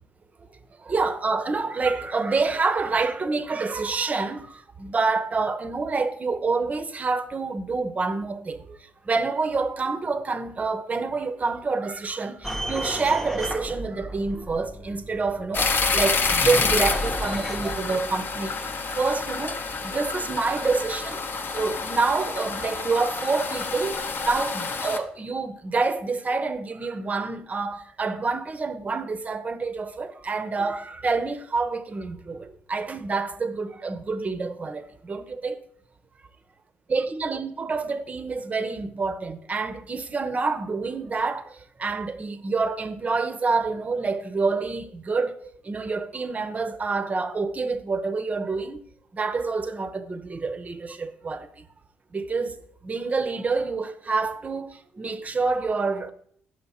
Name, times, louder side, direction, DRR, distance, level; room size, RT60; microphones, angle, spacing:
voice 1, 0.5-18.6 18.9-21.3 21.5-35.6 36.9-48.8 49.1-51.7 52.1-52.6 52.8-56.1, right 4 dB, 30° right, 0.6 m, -27 dB
sound 1, 12.4-17.8, equal, 5° left, 0.7 m, -33 dB
sound 2, 15.5-25.0, left 4 dB, 45° left, 0.7 m, -28 dB
6.3 x 4.6 x 4.1 m
supercardioid pair, 65°, 5 cm